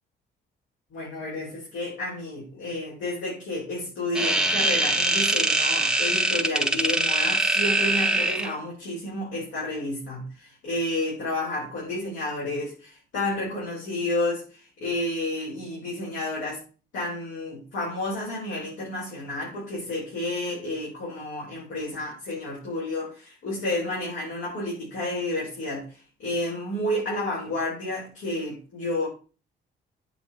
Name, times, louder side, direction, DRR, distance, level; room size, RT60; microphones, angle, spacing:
voice 1, 0.9-16.6 16.9-29.1, left 1 dB, 75° left, -6 dB, 5.8 m, -31 dB
sound 1, 4.2-8.6, right 2 dB, 5° right, 1.1 m, -23 dB
9.1 x 7.2 x 4.6 m, 0.35 s
cardioid pair, 90°, 20 cm